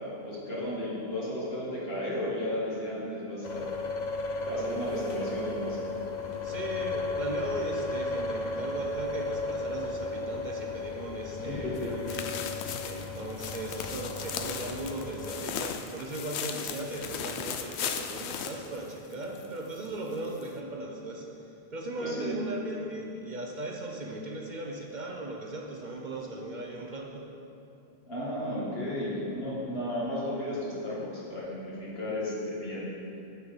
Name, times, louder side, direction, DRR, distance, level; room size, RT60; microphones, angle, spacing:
voice 1, 0.0-3.7 4.5-5.9 11.5-11.9 22.0-22.4 28.1-32.9, left 1 dB, 65° left, -7 dB, 2.3 m, -34 dB
sound 1, 3.4-15.3, left 2 dB, 50° left, 0.7 m, -35 dB
voice 2, 6.4-27.3, right 2 dB, 50° right, 0 dB, 0.8 m, -38 dB
sound 2, 11.8-19.5 19.8-19.9 20.4-20.5, left 7 dB, 85° left, 0.9 m, -37 dB
6.7 x 5.6 x 7.1 m, 2.8 s
omnidirectional pair, 1.1 m